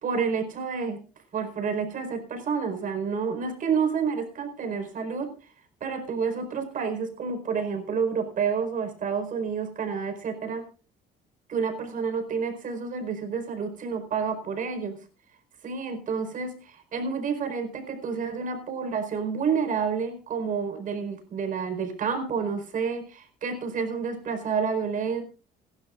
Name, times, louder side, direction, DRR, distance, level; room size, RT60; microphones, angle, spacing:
voice 1, 0.0-1.0 1.3-5.5 5.8-10.7 11.5-15.0 15.6-25.2, right 6 dB, 50° right, 7 dB, 4.5 m, -29 dB
27.5 x 12.0 x 2.5 m, 0.33 s
cardioid pair, 110°, 17 cm